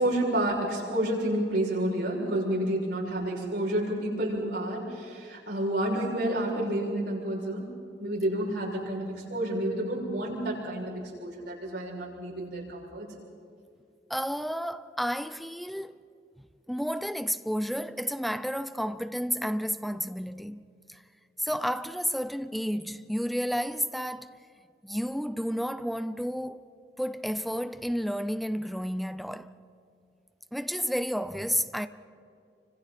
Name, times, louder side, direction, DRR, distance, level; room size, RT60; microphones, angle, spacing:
voice 1, 0.0-7.7 8.0-10.9 11.2-13.1, right 1 dB, 80° right, 6.8 m, -29 dB
voice 2, 14.1-16.0 16.7-21.0 21.4-24.4 24.8-26.6 27.0-29.5 30.5-31.9, equal, ahead, 0.6 m, -31 dB
29.0 x 25.5 x 4.3 m
head